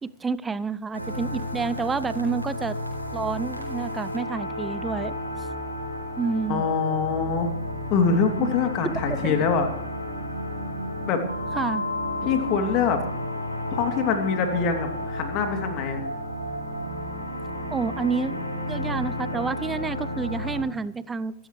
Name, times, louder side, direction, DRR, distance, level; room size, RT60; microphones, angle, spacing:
voice 1, 0.0-2.8 3.1-5.2 6.2-6.7 8.4-8.5 8.8-9.4 11.5-11.8 17.7-21.3, right 5 dB, 15° right, 18 dB, 0.6 m, -29 dB
sound 1, 0.9-20.6, left 1 dB, 90° right, 4.3 m, -32 dB
voice 2, 6.5-7.5 7.9-9.7 11.1-11.2 12.2-13.0 13.7-16.0, left 6 dB, 40° left, 5 dB, 3.0 m, -24 dB
25.5 x 12.5 x 3.3 m, 0.76 s
figure-of-eight pair, 90°, 0 cm